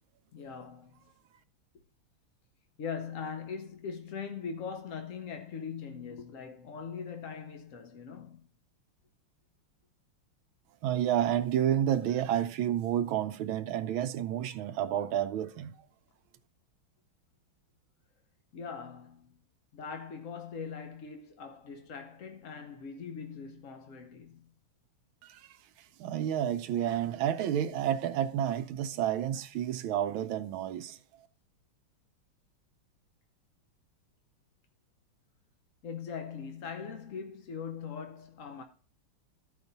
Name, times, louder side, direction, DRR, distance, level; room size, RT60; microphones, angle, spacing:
voice 1, 0.3-1.0 2.8-8.5 18.5-19.4 19.7-24.5 35.8-38.6, left 6 dB, 65° left, 0.8 m, -41 dB
voice 2, 10.8-15.8 25.2-25.6 26.0-31.0, right 10 dB, 80° right, 1.4 m, -30 dB
13.0 x 5.2 x 4.0 m
omnidirectional pair, 2.3 m